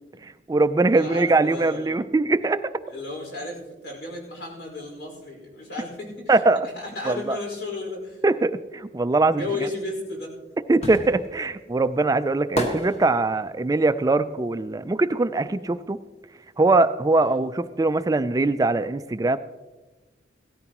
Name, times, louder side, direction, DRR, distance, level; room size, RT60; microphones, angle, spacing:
voice 1, 0.2-2.6 6.3-6.7 7.1-7.4 8.2-9.4 10.7-16.0 16.6-19.4, right 2 dB, 20° right, 12 dB, 0.3 m, -22 dB
voice 2, 0.9-2.0 2.9-6.4 6.7-8.2 9.3-10.4 17.1-17.4, left 2 dB, 70° left, 0 dB, 4.9 m, -34 dB
sound 1, 9.9-15.8 16.1-17.7 17.9-18.0, equal, 35° left, 1.6 m, -33 dB
17.0 x 13.5 x 3.0 m, 1.2 s
head